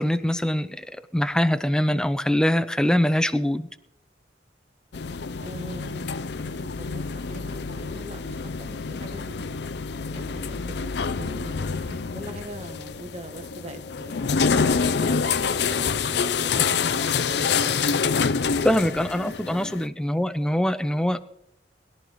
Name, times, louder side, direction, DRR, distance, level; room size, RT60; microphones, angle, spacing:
voice 1, 0.0-3.7 18.6-21.2, equal, 5° left, 10 dB, 0.5 m, -23 dB
sound 1, 4.9-19.9, left 5 dB, 65° left, 0.5 m, -27 dB
voice 2, 5.4-6.1 6.4-9.5 10.1-14.2 14.7-18.8 19.2-19.8, right 1 dB, 35° right, 6 dB, 1.4 m, -42 dB
21.5 x 12.5 x 3.1 m, 0.85 s
head